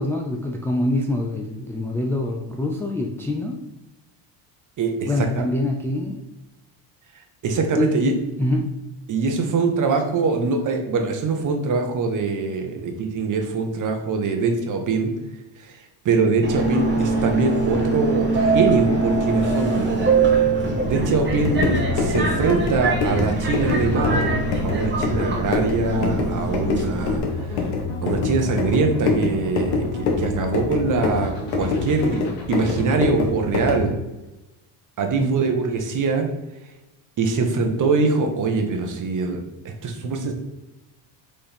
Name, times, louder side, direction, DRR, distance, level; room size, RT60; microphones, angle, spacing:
voice 1, 0.0-3.6 5.1-6.2 7.7-8.7 35.2-35.4, left 1 dB, 5° left, 0 dB, 0.4 m, -25 dB
voice 2, 4.8-5.4 7.4-8.1 9.1-15.1 15.6-15.7 16.0-19.9 20.9-27.2 28.0-32.2 32.5-33.9 35.0-36.3 37.2-39.4 39.8-40.3, right 4 dB, 40° right, 4 dB, 1.3 m, -23 dB
Subway metro underground, 16.4-27.2, right 3 dB, 25° right, 1.5 m, -23 dB
sound 1, 20.8-33.0, left 2 dB, 50° left, 2.1 m, -36 dB
sound 2, 21.3-33.9, left 4 dB, 70° left, 1.7 m, -26 dB
5.3 x 4.5 x 5.2 m, 1.0 s
cardioid pair, 135°, 48 cm